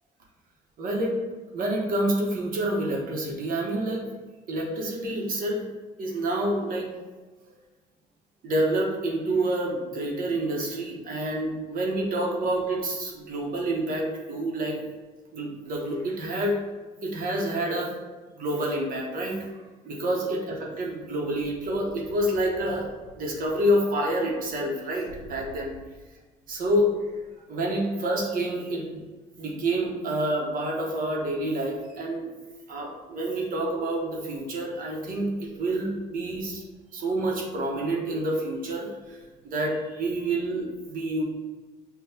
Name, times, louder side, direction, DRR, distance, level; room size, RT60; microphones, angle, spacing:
voice 1, 0.8-1.2 1.5-4.0 4.5-5.6 6.0-6.9 8.4-14.8 15.3-16.6 17.0-18.0 18.4-19.5 19.8-25.7 26.5-26.9 27.5-29.0 29.4-32.2 32.7-36.6 36.9-39.2 39.4-41.2, right 1 dB, 55° right, -1 dB, 1.1 m, -28 dB
6.8 x 2.5 x 2.8 m, 1.3 s
cardioid pair, 110°, 17 cm